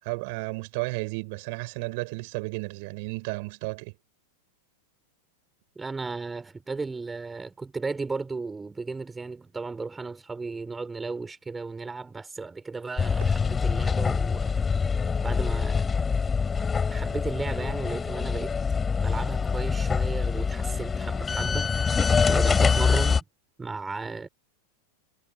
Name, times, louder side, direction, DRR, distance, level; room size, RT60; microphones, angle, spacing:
voice 1, 0.0-3.9, right 29 dB, 45° right, 6.6 m, -33 dB
voice 2, 5.7-14.6 14.9-15.9 16.9-18.5 19.0-23.2 23.6-24.3, right 4 dB, 10° right, 4.8 m, -35 dB
sound 1, 13.0-23.2, left 5 dB, 15° left, 7.6 m, -25 dB
figure-of-eight pair, 90°, 0 cm